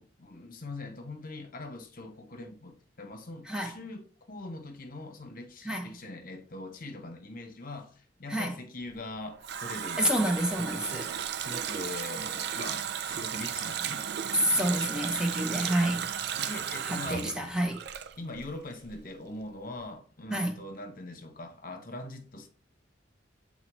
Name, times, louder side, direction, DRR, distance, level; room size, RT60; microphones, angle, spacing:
voice 1, 0.0-10.1 10.6-11.1 11.4-14.0 14.5-14.8 16.4-17.4 18.2-22.5, left 2 dB, 45° left, 1.0 m, -42 dB
Water tap faucet, 9.0-18.6 18.8-19.0, right 8 dB, 55° right, 0.4 m, -35 dB
voice 2, 10.0-11.1 14.4-16.1 16.9-17.8 20.3-20.6, equal, 5° right, 0.8 m, -28 dB
7.7 x 4.0 x 3.1 m
head